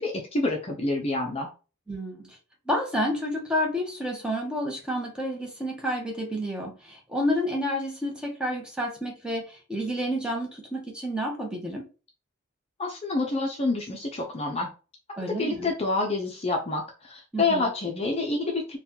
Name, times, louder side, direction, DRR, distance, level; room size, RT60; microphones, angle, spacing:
voice 1, 0.0-1.5 12.8-14.7 15.4-18.8, left 3 dB, 30° left, 0.5 m, -28 dB
voice 2, 1.9-2.4 2.7-11.9 15.2-15.7 17.3-17.7, equal, 5° right, 0.8 m, -30 dB
4.0 x 2.2 x 2.8 m
head